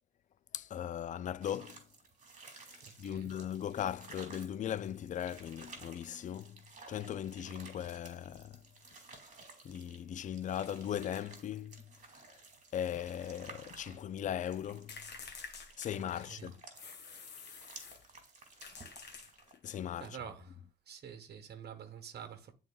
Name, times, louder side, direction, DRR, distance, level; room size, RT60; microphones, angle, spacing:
voice 1, 0.5-1.8 2.7-6.6 6.9-8.6 9.6-11.8 12.7-14.9 15.8-16.6 19.6-20.2, left 10 dB, 40° left, 0.4 m, -38 dB
sound 1, 1.4-19.5, right 3 dB, 40° right, 2.1 m, -55 dB
voice 2, 2.8-3.3 16.2-16.5 20.0-20.5 20.9-22.5, right 8 dB, 55° right, 1.2 m, -47 dB
sound 2, 14.9-16.3 16.8-18.1 18.6-19.7, left 5 dB, 60° left, 1.4 m, -49 dB
11.0 x 3.8 x 2.3 m
cardioid pair, 90°, 20 cm